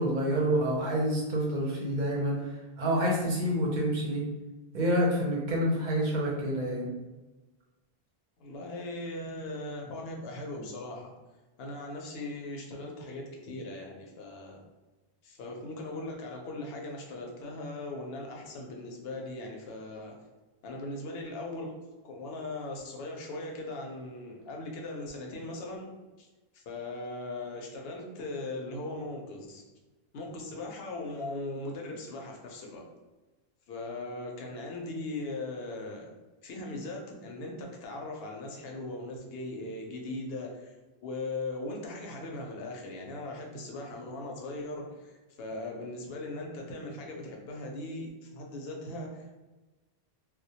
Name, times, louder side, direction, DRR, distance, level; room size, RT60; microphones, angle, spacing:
voice 1, 0.0-2.5 2.8-4.2 4.7-6.9, equal, 55° right, -2 dB, 0.7 m, -28 dB
voice 2, 8.4-11.1 11.6-14.6 15.2-20.1 20.6-21.7 22.0-25.9 26.2-26.3 26.5-29.6 30.1-32.8 33.7-36.1 36.4-40.7 41.0-49.4, left 2 dB, 75° left, 0 dB, 0.8 m, -39 dB
2.2 x 2.1 x 2.7 m, 1.1 s
omnidirectional pair, 1.0 m